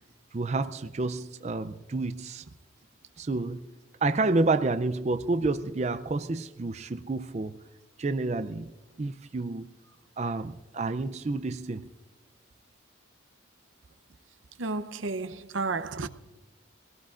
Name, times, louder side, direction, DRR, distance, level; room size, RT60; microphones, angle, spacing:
voice 1, 0.3-2.4 3.2-3.6 4.0-7.6 8.0-8.7 9.0-9.7 10.2-11.9, right 3 dB, 35° right, 0.4 m, -29 dB
voice 2, 14.6-16.1, right 3 dB, 85° right, 0.7 m, -32 dB
24.0 x 18.0 x 2.5 m
head